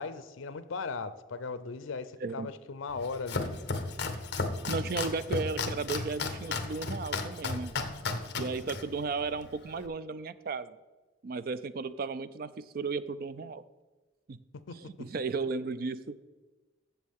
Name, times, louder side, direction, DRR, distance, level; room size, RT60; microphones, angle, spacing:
voice 1, 0.0-3.6 14.7-14.8, left 4 dB, 80° left, 0.6 m, -37 dB
Domestic sounds home sounds, 2.9-9.9, left 3 dB, 55° left, 0.8 m, -35 dB
voice 2, 4.7-7.7 8.4-10.8 11.2-13.6 14.3-14.4 14.8-16.2, right 4 dB, 45° right, 0.4 m, -34 dB
14.0 x 7.3 x 3.6 m
head